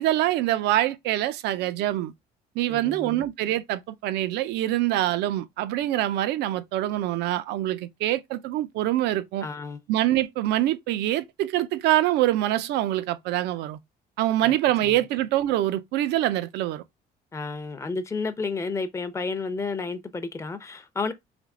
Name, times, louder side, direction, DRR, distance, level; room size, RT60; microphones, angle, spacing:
voice 1, 0.0-2.1 2.6-9.5 9.9-13.8 14.2-16.8, right 14 dB, 85° right, 0.5 m, -25 dB
voice 2, 2.7-3.2 9.4-9.8 17.3-21.1, left 4 dB, 15° left, 0.6 m, -31 dB
3.5 x 2.8 x 3.7 m
cardioid pair, 110°, 17 cm